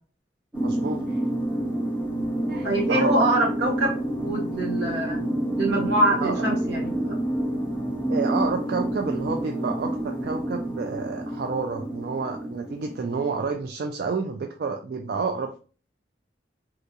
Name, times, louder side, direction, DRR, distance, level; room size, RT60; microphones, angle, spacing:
sound 1, 0.5-13.4, right 1 dB, 5° right, 0.7 m, -28 dB
voice 1, 0.6-1.2 2.5-3.2 6.2-6.6 8.1-15.6, right 4 dB, 60° right, 4 dB, 0.3 m, -30 dB
voice 2, 2.6-5.2 5.6-7.2, right 1 dB, 85° right, -2 dB, 1.4 m, -24 dB
3.7 x 2.3 x 2.7 m, 0.38 s
head